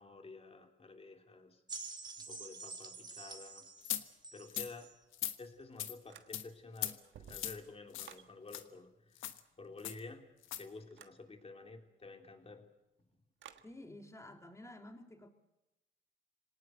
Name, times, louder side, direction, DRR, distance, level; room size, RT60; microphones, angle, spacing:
voice 1, 0.0-1.6 2.3-3.7 3.9-4.9 5.4-12.7 13.1-13.2, left 3 dB, 30° left, 3.4 m, -51 dB
sound 1, 1.7-5.0 5.8-5.9, right 3 dB, 20° right, 2.2 m, -48 dB
sound 2, 3.8-4.0 4.5-4.7 5.1-5.4 5.8-5.9 6.3-6.4 6.8-6.9 7.3-7.6 7.9-8.1 8.5-8.6 9.2-9.4 9.8-10.0 10.4-10.6, left 12 dB, 90° left, 1.3 m, -39 dB
sound 3, 6.1-6.7 7.0-8.3 10.9-11.2 13.4-13.7, right 9 dB, 70° right, 1.5 m, -56 dB
voice 2, 13.6-15.3, left 1 dB, 15° left, 3.1 m, -51 dB
26.5 x 18.5 x 8.1 m
cardioid pair, 90°, 20 cm